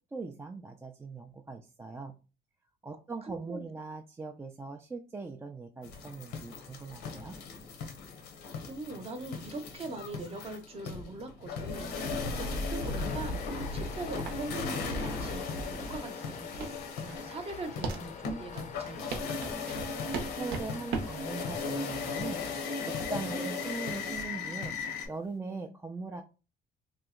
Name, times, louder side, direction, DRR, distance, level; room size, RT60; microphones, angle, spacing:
voice 1, 0.1-2.1 2.8-7.4 20.3-24.7 25.1-26.2, right 3 dB, 15° right, 3 dB, 0.3 m, -40 dB
voice 2, 3.2-3.6 8.7-19.3 23.2-23.4, right 3 dB, 35° right, 7 dB, 0.8 m, -42 dB
sound 1, 5.8-25.1, left 4 dB, 85° left, 0.8 m, -37 dB
sound 2, 12.7-25.3, right 4 dB, 75° right, 0.7 m, -42 dB
sound 3, 12.9-22.6, left 6 dB, 45° left, 0.6 m, -46 dB
2.9 x 2.1 x 3.6 m, 0.31 s
cardioid pair, 110°, 17 cm